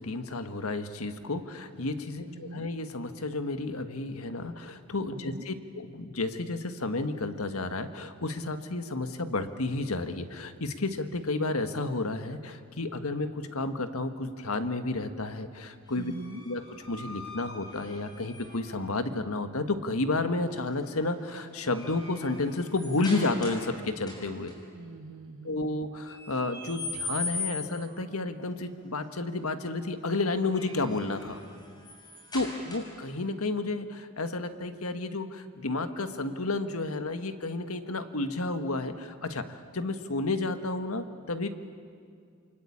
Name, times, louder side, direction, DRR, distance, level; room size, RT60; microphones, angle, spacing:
voice 1, 0.0-16.1 16.4-24.5 25.4-31.4 32.3-41.5, left 2 dB, 85° left, 8 dB, 1.6 m, -31 dB
voice 2, 2.2-2.7 5.1-5.5 16.0-16.4 24.7-25.7, right 2 dB, 65° right, 6 dB, 1.2 m, -42 dB
sound 1, 15.9-18.8 20.6-20.9 21.3-23.7 24.0-24.6 26.1-28.0 30.3-33.1, left 3 dB, 20° left, 6.2 m, -40 dB
28.0 x 24.0 x 8.7 m, 2.3 s
head